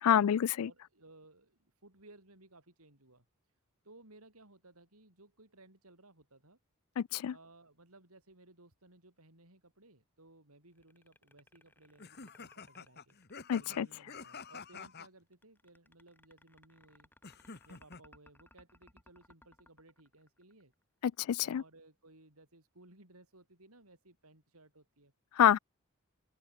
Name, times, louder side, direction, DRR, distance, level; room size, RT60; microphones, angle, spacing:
voice 1, 0.0-0.7 7.0-7.3 13.5-13.9 21.0-21.6 25.4-25.6, left 9 dB, 85° left, 0.4 m, -27 dB
voice 2, 0.6-3.2 3.8-6.6 7.2-13.2 13.6-17.1 17.6-20.7 21.4-25.1, right 2 dB, 85° right, 6.7 m, -60 dB
sound 1, 10.7-13.9 15.3-20.8, left 1 dB, 10° left, 4.7 m, -63 dB
sound 2, 12.0-15.1 17.2-18.0, left 5 dB, 45° left, 1.4 m, -49 dB
open air
head